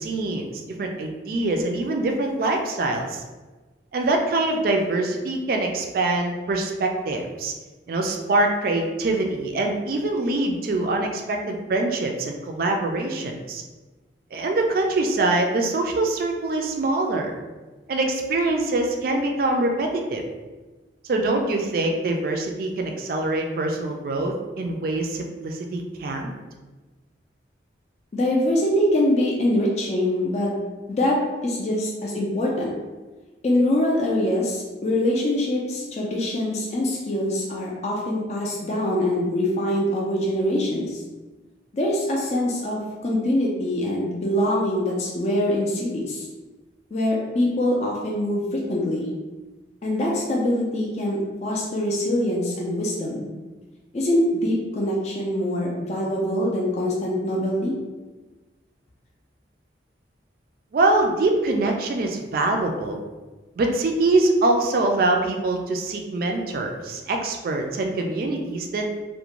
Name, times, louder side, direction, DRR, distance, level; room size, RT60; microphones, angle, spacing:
voice 1, 0.0-3.2 3.9-7.5 7.9-13.6 14.3-17.3 17.9-20.2 21.0-26.3 60.7-63.0 63.6-68.8, right 2 dB, 50° right, 2 dB, 0.3 m, -24 dB
voice 2, 28.1-30.5 30.9-32.7 33.4-41.0 41.7-46.3 46.9-49.1 49.8-53.3 53.9-57.7, left 1 dB, 35° left, -2 dB, 0.3 m, -24 dB
2.4 x 2.1 x 2.9 m, 1.2 s
head